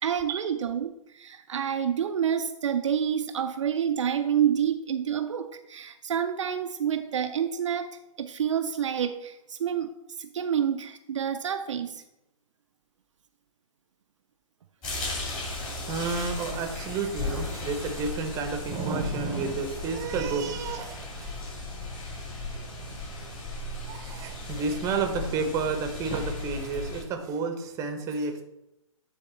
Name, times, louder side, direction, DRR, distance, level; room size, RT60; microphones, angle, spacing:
voice 1, 0.0-12.0, right 8 dB, 60° right, 7 dB, 0.5 m, -28 dB
sound 1, 14.8-27.0, left 2 dB, 25° left, 2.9 m, -36 dB
voice 2, 15.5-21.3 23.8-28.4, right 4 dB, 20° right, 6 dB, 0.8 m, -31 dB
9.7 x 3.5 x 4.3 m, 0.87 s
figure-of-eight pair, 130°, 18 cm